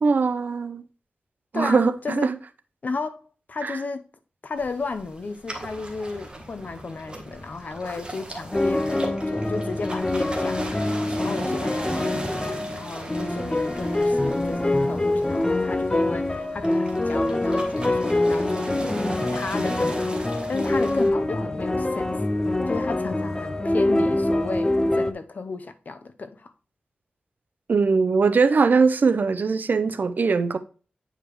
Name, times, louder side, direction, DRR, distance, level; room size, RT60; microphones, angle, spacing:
voice 1, 0.0-0.9 1.5-2.4 3.6-3.8 27.7-30.6, right 4 dB, 65° right, 0.6 m, -21 dB
voice 2, 1.5-2.3 2.8-4.0 4.4-18.9 19.3-22.2 22.7-26.5, left 4 dB, 60° left, 0.7 m, -34 dB
sound 1, 4.6-21.1, right 2 dB, 30° right, 1.5 m, -38 dB
sound 2, 8.5-25.1, left 2 dB, 20° left, 0.6 m, -24 dB
8.9 x 5.0 x 3.0 m
wide cardioid pair, 95°, 3 cm